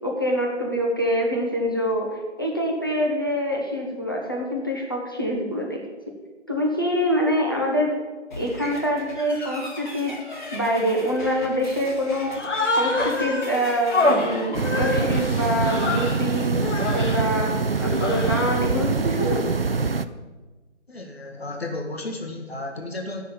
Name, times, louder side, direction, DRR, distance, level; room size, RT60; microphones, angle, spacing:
voice 1, 0.0-5.8 6.5-8.0 8.3-10.1 10.5-12.4 12.8-16.6 16.9-19.5, equal, 20° left, -1 dB, 1.0 m, -25 dB
sound 1, 8.3-16.6, left 1 dB, 40° left, 1.8 m, -39 dB
Human voice, 12.3-13.5 13.9-16.2 16.6-17.2 17.8-18.6, left 2 dB, 90° left, 1.9 m, -25 dB
sound 2, 14.5-20.1, right 4 dB, 55° right, 0.5 m, -24 dB
voice 2, 20.9-23.2, left 2 dB, 60° left, 2 dB, 1.6 m, -33 dB
9.7 x 6.6 x 7.1 m, 1.2 s
figure-of-eight pair, 175°, 35 cm